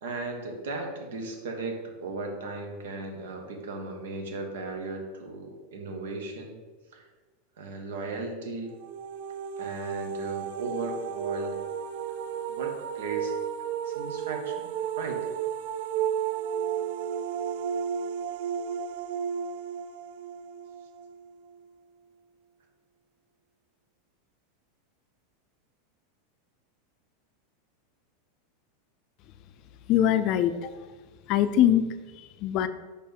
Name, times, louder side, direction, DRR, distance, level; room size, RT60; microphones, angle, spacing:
voice 1, 0.0-6.6 6.9-7.1 7.6-8.8 9.6-11.6 12.5-13.4 13.8-14.7 15.0-15.2, right 3 dB, 85° right, 2 dB, 1.4 m, -36 dB
sound 1, 8.7-21.6, right 8 dB, 65° right, 0.4 m, -33 dB
voice 2, 29.9-30.7 31.3-31.8 32.1-32.7, left 11 dB, 45° left, 11 dB, 0.4 m, -23 dB
5.0 x 4.3 x 5.2 m, 1.3 s
supercardioid pair, 145°, 0 cm